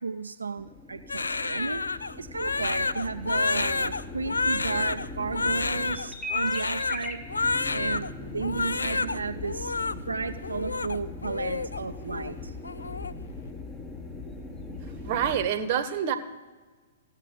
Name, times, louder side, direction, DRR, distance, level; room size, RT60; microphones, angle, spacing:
voice 1, 0.0-1.8 2.2-7.2 7.7-12.5, right 4 dB, 85° right, 6 dB, 0.5 m, -33 dB
sound 1, 0.6-15.5, left 2 dB, 15° left, 1.3 m, -40 dB
Crying sobbing, 1.1-8.1 8.4-9.2 9.4-9.9 10.4-11.8 12.1-12.3 12.6-13.1, left 3 dB, 80° left, 0.4 m, -29 dB
sound 2, 2.5-13.5, left 4 dB, 60° left, 1.5 m, -50 dB
voice 2, 15.0-16.2, right 9 dB, 45° right, 10 dB, 1.0 m, -26 dB
16.5 x 7.4 x 5.2 m, 1.4 s
figure-of-eight pair, 115°, 0 cm